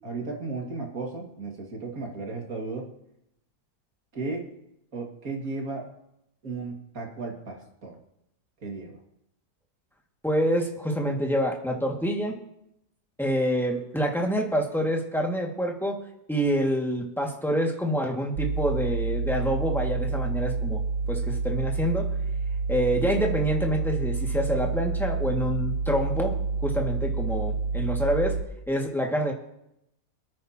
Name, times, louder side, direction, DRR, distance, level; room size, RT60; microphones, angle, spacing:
voice 1, 0.0-2.9 4.1-4.5 4.9-5.9 6.4-8.0 8.6-9.0, right 3 dB, 60° right, 0 dB, 2.5 m, -35 dB
voice 2, 10.2-12.4 13.2-16.0 16.3-20.8 21.1-22.1 22.7-28.4 28.7-29.3, equal, ahead, -1 dB, 1.8 m, -27 dB
sound 1, 18.4-28.4, right 4 dB, 85° right, 1.4 m, -28 dB
27.0 x 9.3 x 2.9 m, 0.81 s
omnidirectional pair, 1.7 m